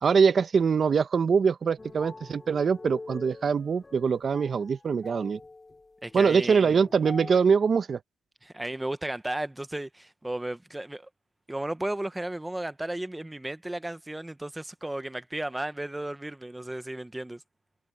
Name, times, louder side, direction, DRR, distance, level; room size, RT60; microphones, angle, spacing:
voice 1, 0.0-5.4 6.1-8.0, right 6 dB, 45° right, 1.2 m, -23 dB
sound 1, 1.8-7.4, left 3 dB, 20° left, 3.9 m, -45 dB
voice 2, 6.0-6.8 8.4-11.1 11.5-17.4, right 1 dB, 10° right, 1.2 m, -34 dB
cardioid pair, 90°, 0 cm